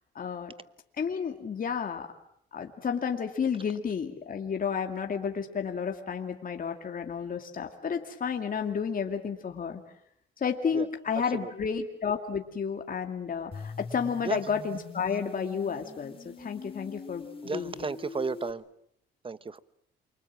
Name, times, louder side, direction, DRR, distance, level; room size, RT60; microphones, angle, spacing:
voice 1, 0.1-0.5 1.0-2.1 2.5-9.8 10.4-17.9, left 6 dB, 45° left, 2.4 m, -31 dB
sound 1, 13.5-18.5, left 4 dB, 30° left, 3.9 m, -43 dB
voice 2, 17.4-18.6 19.2-19.6, right 4 dB, 25° right, 1.0 m, -33 dB
28.5 x 24.5 x 7.5 m
cardioid pair, 90°, 20 cm